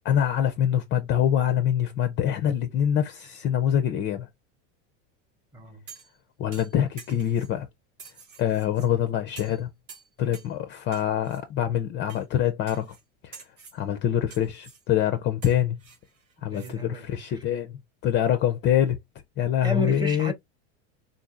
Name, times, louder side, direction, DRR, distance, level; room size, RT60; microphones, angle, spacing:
voice 1, 0.0-4.3 6.4-7.7 8.4-9.7 10.2-13.0 13.2-13.4 13.7-15.8 16.4-19.0 19.4-20.3, left 10 dB, 30° left, 0.4 m, -25 dB
sound 1, 5.9-6.2 6.5-7.5 8.0-8.9 9.4-9.6 9.9-10.5 10.9-11.4 12.1-12.2 12.7-13.0 13.3-13.8 14.3-14.8 15.4-16.7 17.1-17.2, right 5 dB, 85° right, 1.4 m, -48 dB
voice 2, 16.5-17.4 19.6-20.3, equal, 10° right, 0.8 m, -33 dB
3.7 x 2.6 x 2.4 m
supercardioid pair, 115°, 37 cm